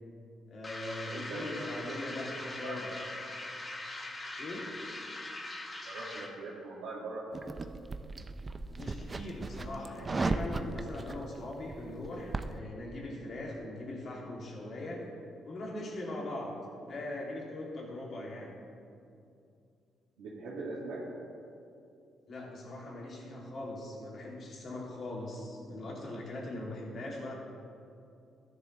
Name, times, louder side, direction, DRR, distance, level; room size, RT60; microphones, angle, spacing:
voice 1, 0.5-2.9 4.4-4.9 8.8-15.1 15.4-18.6 22.3-27.4, left 1 dB, 55° left, -2 dB, 2.6 m, -41 dB
sound 1, 0.6-6.4, left 2 dB, 30° left, 1.3 m, -42 dB
voice 2, 1.1-3.1 5.8-7.6 20.2-21.0, right 2 dB, 90° right, -8 dB, 2.0 m, -42 dB
sound 2, 7.3-12.6, right 3 dB, 30° right, 0.5 m, -36 dB
14.0 x 10.0 x 3.2 m, 2.5 s
cardioid pair, 90°, 0 cm